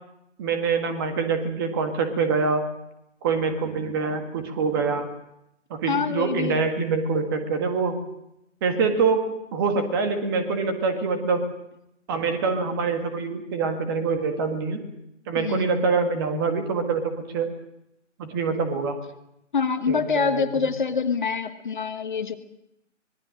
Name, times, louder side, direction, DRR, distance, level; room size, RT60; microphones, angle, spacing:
voice 1, 0.4-2.6 3.2-5.1 5.7-8.0 8.6-11.4 12.1-14.8 15.3-17.5 18.2-19.0 19.9-20.5, right 4 dB, 20° right, 7 dB, 1.7 m, -25 dB
voice 2, 5.9-6.7 15.3-15.7 19.5-22.3, left 5 dB, 40° left, 9 dB, 1.4 m, -25 dB
25.5 x 20.5 x 6.4 m, 0.82 s
figure-of-eight pair, 150°, 38 cm